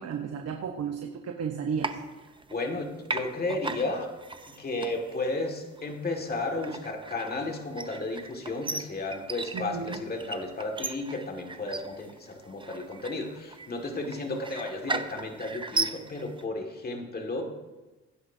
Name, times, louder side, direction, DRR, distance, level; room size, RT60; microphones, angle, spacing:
voice 1, 0.0-2.0 9.5-10.0, right 6 dB, 55° right, 4 dB, 1.0 m, -33 dB
sound 1, 1.8-2.8 3.1-16.4, right 3 dB, 15° right, 0.7 m, -37 dB
voice 2, 2.5-4.1 4.6-17.4, left 2 dB, 30° left, 2 dB, 2.0 m, -33 dB
16.5 x 9.6 x 2.7 m, 1.1 s
cardioid pair, 90°, 30 cm